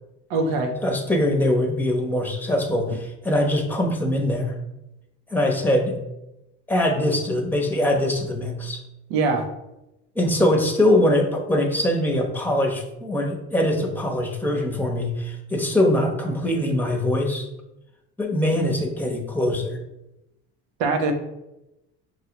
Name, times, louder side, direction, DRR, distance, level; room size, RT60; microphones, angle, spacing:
voice 1, 0.3-0.7 9.1-9.4 20.8-21.1, right 3 dB, 75° right, 5 dB, 0.8 m, -22 dB
voice 2, 0.8-4.5 5.3-6.0 6.7-8.8 10.1-17.5 18.2-19.8, left 1 dB, 5° left, 1 dB, 0.9 m, -22 dB
5.8 x 2.4 x 2.9 m, 0.93 s
supercardioid pair, 75°, 33 cm